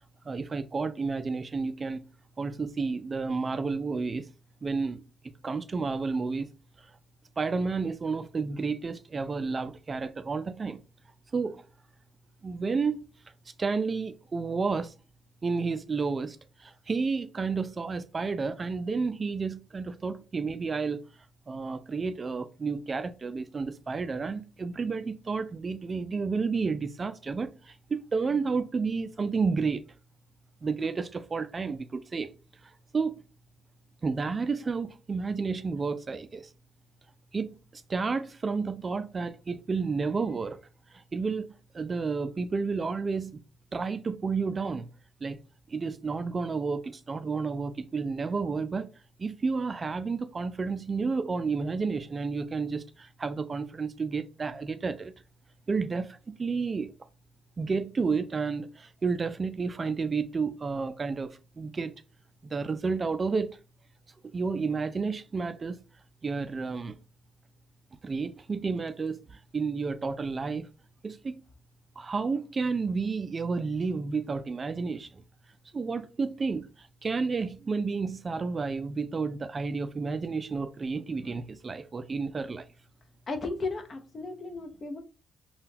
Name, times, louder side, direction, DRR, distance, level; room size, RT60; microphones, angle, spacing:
voice 1, 0.2-2.1 2.4-4.3 4.6-6.5 6.8-6.9 7.4-10.8 11.3-11.6 12.4-13.0 13.6-14.9 15.4-21.1 21.5-29.8 30.6-32.3 32.6-33.2 34.0-36.5 37.3-40.6 40.9-43.4 43.7-44.9 45.2-45.4 45.7-48.9 49.2-55.1 55.7-56.9 57.6-61.9 62.4-63.6 64.3-65.8 66.2-67.0 68.0-70.7 71.0-71.4 72.0-75.2 75.7-82.7, right 4 dB, 35° right, 0.3 m, -31 dB
voice 2, 83.3-85.0, left 3 dB, 40° left, 0.6 m, -35 dB
3.6 x 2.2 x 2.7 m
cardioid pair, 90°, 0 cm